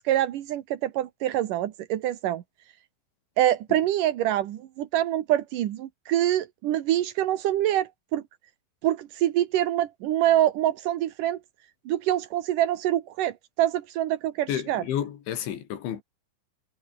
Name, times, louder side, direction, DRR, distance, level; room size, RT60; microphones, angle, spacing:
voice 1, 0.1-2.4 3.4-8.2 8.8-11.4 11.9-14.8, right 12 dB, 65° right, 2.1 m, -25 dB
voice 2, 14.5-16.0, left 10 dB, 75° left, 5.0 m, -31 dB
omnidirectional pair, 5.4 m